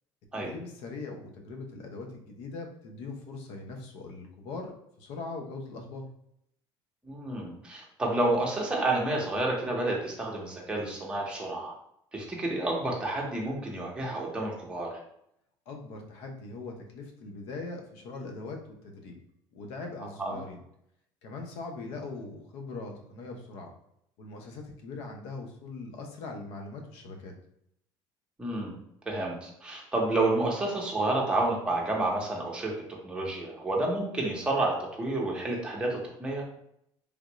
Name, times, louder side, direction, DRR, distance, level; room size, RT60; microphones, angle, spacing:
voice 1, 0.4-4.7 5.0-6.0 15.7-19.2 19.5-20.6 21.2-23.7 24.2-27.3, left 3 dB, 75° left, 2 dB, 0.7 m, -41 dB
voice 2, 7.0-11.7 12.1-15.0 20.2-20.3 28.4-28.7 29.1-32.7 33.0-36.4, right 2 dB, 10° right, -3 dB, 0.9 m, -30 dB
3.4 x 2.5 x 3.0 m, 0.75 s
cardioid pair, 135°, 10 cm